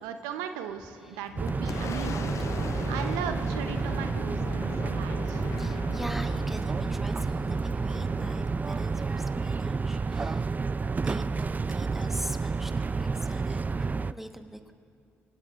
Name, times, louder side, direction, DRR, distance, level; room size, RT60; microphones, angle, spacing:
voice 1, 0.0-2.4 2.9-5.4, right 8 dB, 90° right, 8 dB, 0.7 m, -37 dB
Boom, 0.8-10.2, left 8 dB, 55° left, 0.4 m, -41 dB
sound 1, 1.4-14.1, right 4 dB, 30° right, 0.3 m, -30 dB
voice 2, 5.4-10.7 11.0-14.7, right 1 dB, 5° right, 6 dB, 1.2 m, -42 dB
24.5 x 18.0 x 2.4 m, 2.4 s
supercardioid pair, 55°, 6 cm